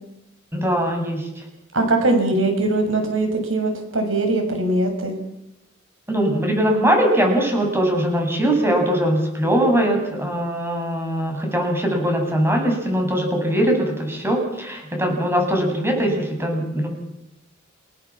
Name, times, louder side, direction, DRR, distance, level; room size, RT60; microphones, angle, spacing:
voice 1, 0.5-1.4 6.1-16.9, right 1 dB, 10° right, 2 dB, 7.3 m, -21 dB
voice 2, 1.7-5.2, right 2 dB, 70° right, 4 dB, 6.7 m, -21 dB
29.5 x 18.0 x 7.5 m, 0.88 s
head